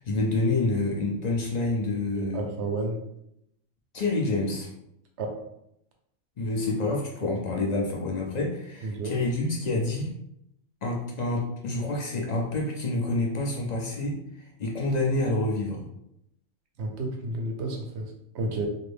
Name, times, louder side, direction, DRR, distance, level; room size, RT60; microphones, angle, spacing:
voice 1, 0.0-2.4 3.9-4.7 6.4-10.1 10.8-15.8, left 2 dB, 60° left, -1 dB, 0.4 m, -28 dB
voice 2, 2.1-3.0 5.2-5.3 8.8-9.1 16.8-18.7, right 2 dB, 65° right, 3 dB, 0.9 m, -31 dB
2.6 x 2.6 x 3.3 m, 0.79 s
omnidirectional pair, 1.3 m